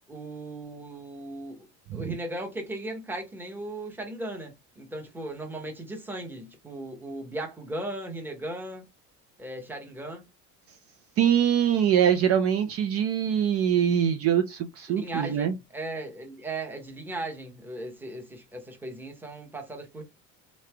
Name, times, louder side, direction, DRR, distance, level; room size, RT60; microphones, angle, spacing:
voice 1, 0.1-1.7 1.9-8.9 9.4-10.3 14.9-20.0, right 1 dB, 5° right, 0.8 m, -37 dB
voice 2, 11.2-15.5, right 9 dB, 40° right, 0.5 m, -23 dB
3.8 x 3.1 x 3.3 m
cardioid pair, 170°, 35 cm